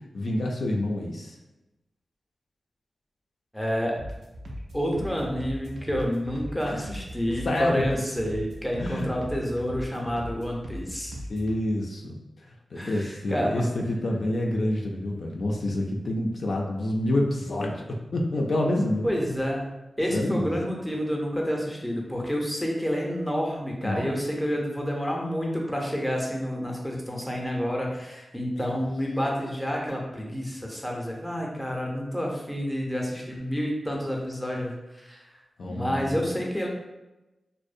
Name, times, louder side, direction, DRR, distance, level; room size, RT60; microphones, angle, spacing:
voice 1, 0.1-1.4 7.4-7.8 8.8-9.1 11.3-12.1 12.7-19.1 20.1-20.6 23.8-24.1 35.6-36.1, left 1 dB, 70° left, -1 dB, 0.3 m, -27 dB
voice 2, 3.5-4.0 4.7-11.2 12.8-13.6 19.0-19.7 20.0-35.2 35.7-36.7, equal, 5° left, -1 dB, 0.5 m, -29 dB
sound 1, 4.0-11.6, equal, 85° right, 0.4 m, -39 dB
2.6 x 2.0 x 2.5 m, 1.0 s
wide cardioid pair, 75°, 0 cm